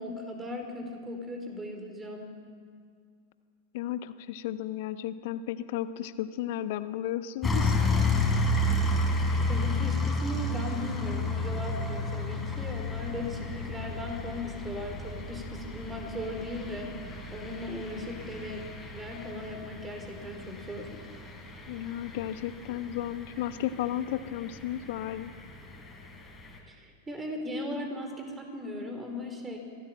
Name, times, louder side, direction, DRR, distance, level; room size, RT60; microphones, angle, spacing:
voice 1, 0.0-2.3 9.5-18.6 18.9-21.0 26.7-29.6, left 1 dB, 15° right, 4 dB, 4.7 m, -38 dB
voice 2, 3.7-7.8 21.7-25.3, left 12 dB, 50° left, 13 dB, 1.0 m, -34 dB
sound 1, 7.4-26.6, left 2 dB, 10° left, 4.8 m, -32 dB
25.0 x 17.0 x 7.6 m, 2.1 s
figure-of-eight pair, 90°, 0 cm